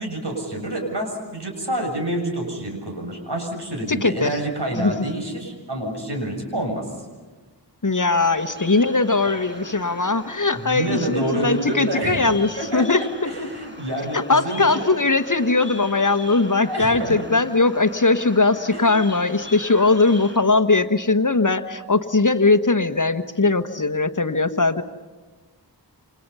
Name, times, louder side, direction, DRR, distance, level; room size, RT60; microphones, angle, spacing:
voice 1, 0.0-6.9 10.6-12.2 12.5-13.0 13.2-14.9 16.6-17.3 18.7-18.8 19.6-19.9, right 1 dB, 70° right, 2 dB, 7.2 m, -28 dB
voice 2, 3.9-4.4 4.7-4.9 7.8-13.3 14.1-24.8, left 3 dB, 45° left, 8 dB, 1.3 m, -20 dB
Bird vocalization bird call bird song, 8.2-20.4, left 1 dB, 25° right, 6.5 m, -40 dB
28.5 x 27.0 x 5.6 m, 1.3 s
wide cardioid pair, 55°, 42 cm